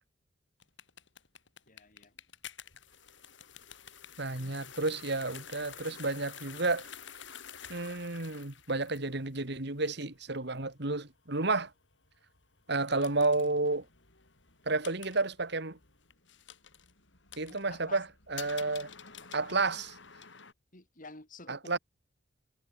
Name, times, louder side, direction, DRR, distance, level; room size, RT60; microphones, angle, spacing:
sound 1, 0.6-20.5, left 8 dB, 70° left, 5.5 m, -51 dB
voice 1, 1.7-2.1 4.4-4.6 17.5-18.0 19.2-19.9 20.7-21.8, left 3 dB, 45° left, 6.1 m, -52 dB
voice 2, 4.2-6.9 7.7-11.7 12.7-13.9 14.7-15.8 17.4-18.0 18.3-18.9 19.3-19.9 21.5-21.8, right 3 dB, 60° right, 2.4 m, -31 dB
head